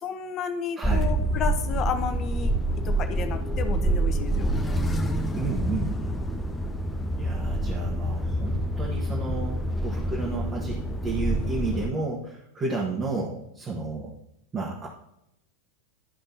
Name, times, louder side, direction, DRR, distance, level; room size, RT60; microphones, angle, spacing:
voice 1, 0.0-2.5 2.8-4.5, left 7 dB, 30° left, 8 dB, 0.8 m, -32 dB
sound 1, 0.8-11.9, right 1 dB, 10° left, 0.8 m, -27 dB
voice 2, 0.8-1.1 5.3-6.0 7.2-14.2 14.5-14.9, right 3 dB, 20° right, -3 dB, 1.4 m, -32 dB
12.5 x 5.2 x 2.8 m, 0.80 s
figure-of-eight pair, 90°, 0 cm